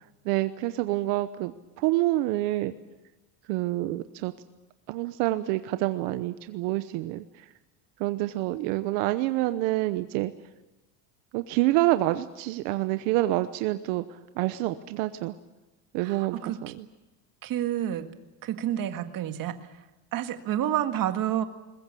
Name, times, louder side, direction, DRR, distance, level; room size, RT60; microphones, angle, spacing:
voice 1, 0.2-2.7 3.5-4.3 4.9-7.2 8.0-10.3 11.3-15.3 15.9-16.8, right 17 dB, 80° right, 11 dB, 1.1 m, -27 dB
voice 2, 16.0-16.6 17.4-18.1 18.4-19.7 20.1-21.4, right 11 dB, 45° right, 7 dB, 1.9 m, -29 dB
21.5 x 21.5 x 8.4 m, 1.1 s
cardioid pair, 140°, 46 cm